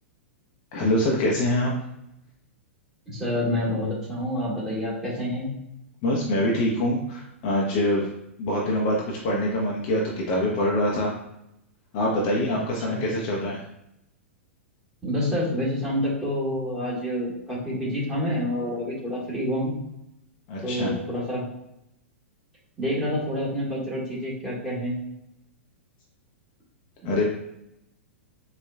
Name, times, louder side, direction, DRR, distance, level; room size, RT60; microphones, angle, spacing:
voice 1, 0.7-1.7 6.0-8.1 8.4-11.1 11.9-13.6 20.5-21.0 27.0-27.2, left 1 dB, 40° left, -2 dB, 0.6 m, -24 dB
voice 2, 3.1-5.5 12.4-12.5 12.9-13.0 15.0-19.7 20.6-21.5 22.8-25.0, equal, 5° right, -8 dB, 1.4 m, -28 dB
4.3 x 2.3 x 2.2 m, 0.84 s
figure-of-eight pair, 100°, 7 cm